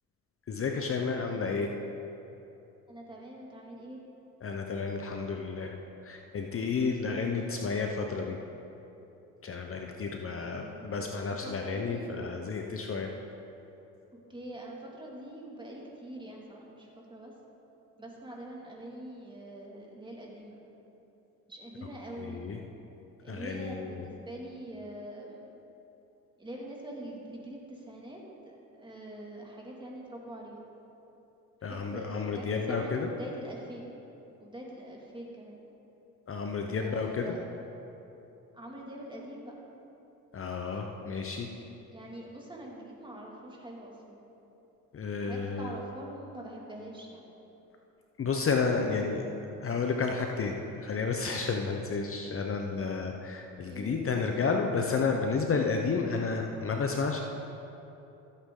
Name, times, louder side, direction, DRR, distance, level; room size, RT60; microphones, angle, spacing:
voice 1, 0.5-1.7 4.4-5.8 6.0-8.4 9.4-13.1 22.2-22.6 23.3-24.0 31.6-33.1 36.3-37.4 40.3-41.5 44.9-45.7 48.2-57.2, left 4 dB, 40° left, 3 dB, 0.9 m, -31 dB
voice 2, 2.9-4.0 10.4-12.3 14.3-17.3 18.0-20.6 21.5-22.5 23.2-25.4 26.4-30.6 31.6-33.9 34.4-35.6 36.8-37.4 38.5-39.5 41.9-44.2 45.1-47.2 53.7-54.0, right 1 dB, 15° right, -2 dB, 2.3 m, -44 dB
15.0 x 8.4 x 3.8 m, 3.0 s
cardioid pair, 85°, 35 cm